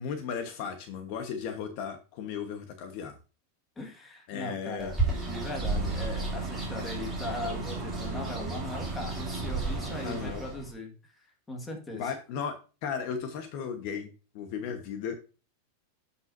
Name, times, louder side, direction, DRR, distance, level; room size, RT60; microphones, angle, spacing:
voice 1, 0.0-3.1 4.3-4.9 10.0-10.4 11.9-12.6 12.8-14.1 14.3-15.2, left 7 dB, 45° left, 6 dB, 1.1 m, -35 dB
voice 2, 3.8-11.1 11.5-12.1, left 2 dB, 10° left, 2 dB, 1.7 m, -39 dB
Bird, 4.8-10.7, right 3 dB, 5° right, 2.8 m, -32 dB
12.0 x 5.6 x 2.6 m, 0.33 s
supercardioid pair, 160°, 0 cm